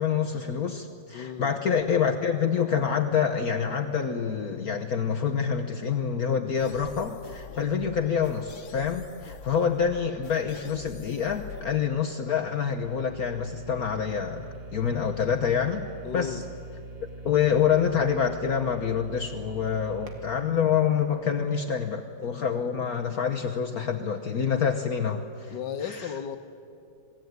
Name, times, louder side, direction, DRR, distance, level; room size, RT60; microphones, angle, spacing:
voice 1, 0.0-15.8 16.1-16.4 17.2-25.5 25.8-26.1, left 7 dB, 55° left, 1.4 m, -27 dB
voice 2, 1.1-1.5 16.0-16.5 25.5-26.4, left 8 dB, 70° left, 1.8 m, -34 dB
sound 1, 6.6-11.8, left 5 dB, 85° left, 1.8 m, -45 dB
sound 2, 12.8-21.7, right 2 dB, 80° right, 3.1 m, -43 dB
28.0 x 20.5 x 9.5 m
omnidirectional pair, 2.0 m